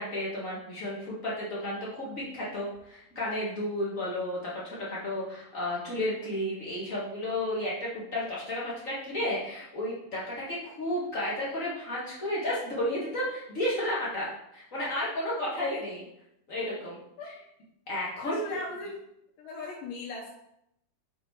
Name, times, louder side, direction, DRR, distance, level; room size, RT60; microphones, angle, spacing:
voice 1, 0.0-16.0 16.5-17.0 17.9-18.4, left 1 dB, 55° left, -6 dB, 0.9 m, -32 dB
voice 2, 15.5-15.8 17.2-17.4 18.2-19.0 19.4-20.3, left 3 dB, 90° left, -3 dB, 2.6 m, -39 dB
6.0 x 4.1 x 4.6 m, 0.79 s
omnidirectional pair, 3.8 m